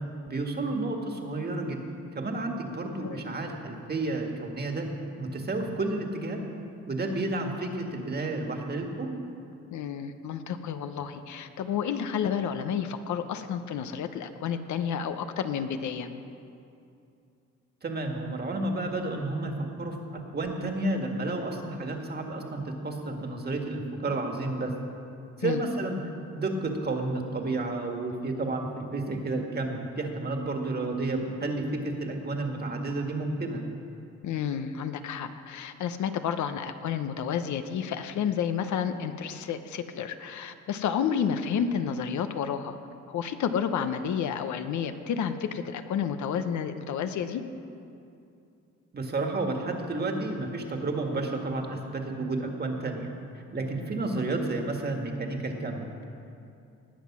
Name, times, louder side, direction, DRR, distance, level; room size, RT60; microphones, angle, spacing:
voice 1, 0.3-1.8 2.1-4.9 5.2-6.4 6.9-9.1 17.8-24.7 25.4-26.0 26.3-33.6 48.9-53.1 53.5-56.0, right 2 dB, 35° right, 3 dB, 1.9 m, -31 dB
voice 2, 9.7-16.1 25.4-25.6 34.2-42.8 43.1-47.4, left 8 dB, 70° left, 9 dB, 0.9 m, -30 dB
19.0 x 7.5 x 6.1 m, 2.6 s
cardioid pair, 90°, 30 cm